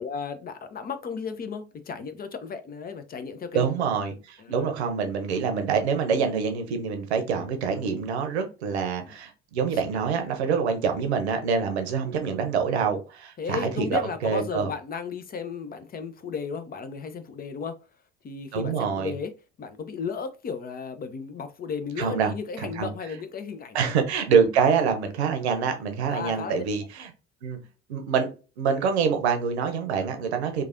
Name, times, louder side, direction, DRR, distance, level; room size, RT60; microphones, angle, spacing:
voice 1, 0.0-3.7 4.4-4.7 9.1-9.2 13.4-17.8 18.2-19.3 19.6-23.9 26.1-26.6, left 6 dB, 30° left, 0.5 m, -34 dB
voice 2, 3.5-14.7 18.5-19.1 22.0-22.3 22.6-22.9 23.7-27.1 27.4-27.6 27.9-28.3 28.6-30.6, right 6 dB, 75° right, 0.7 m, -26 dB
3.1 x 2.3 x 2.5 m
figure-of-eight pair, 60°, 33 cm